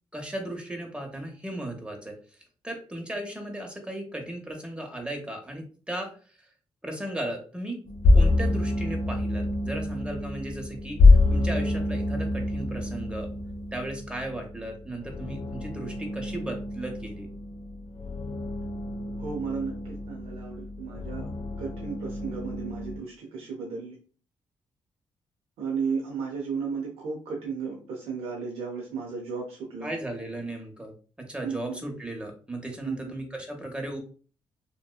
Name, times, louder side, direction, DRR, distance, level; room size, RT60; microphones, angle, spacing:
voice 1, 0.1-2.1 2.6-6.1 6.8-7.8 8.1-13.3 13.7-17.3 29.8-30.9 31.2-34.0, right 1 dB, 10° right, 2 dB, 0.9 m, -36 dB
sound 1, 7.9-23.0, left 2 dB, 65° left, 0.4 m, -26 dB
voice 2, 19.2-21.3 21.6-24.0 25.6-29.9 31.4-31.8 32.8-33.1, right 5 dB, 80° right, -1 dB, 0.5 m, -34 dB
2.8 x 2.2 x 2.2 m, 0.40 s
supercardioid pair, 50°, 10 cm